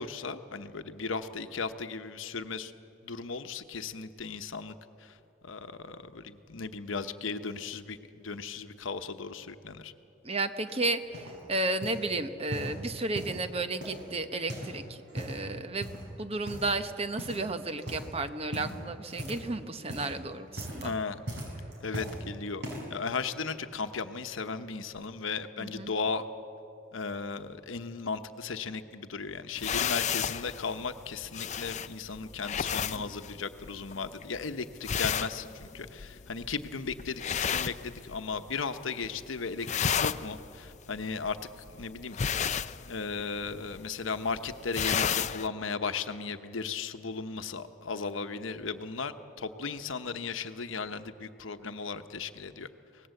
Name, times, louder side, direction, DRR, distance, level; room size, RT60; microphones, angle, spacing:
voice 1, 0.0-2.7 3.0-4.7 5.0-5.2 5.4-9.9 20.6-21.2 21.8-22.6 22.9-26.2 26.9-37.2 37.5-41.4 41.7-52.7, left 4 dB, 80° left, 9 dB, 1.0 m, -36 dB
voice 2, 10.2-11.2 11.5-20.9 25.6-25.9, right 2 dB, 30° right, 9 dB, 1.0 m, -33 dB
sound 1, 10.7-11.4 11.8-12.1 12.5-13.4 13.8-14.8 15.0-15.4 15.8-16.1 16.5-16.9 17.2-17.5 17.8-18.1 18.5-19.5 19.8-20.2 20.5-20.9 21.3-22.2 22.6-23.0 23.6-23.7, equal, 60° right, 5.7 m, -39 dB
sound 2, 29.6-38.5 38.8-39.2 39.5-45.5, left 8 dB, 35° left, 0.5 m, -33 dB
24.5 x 18.5 x 7.8 m, 2.8 s
head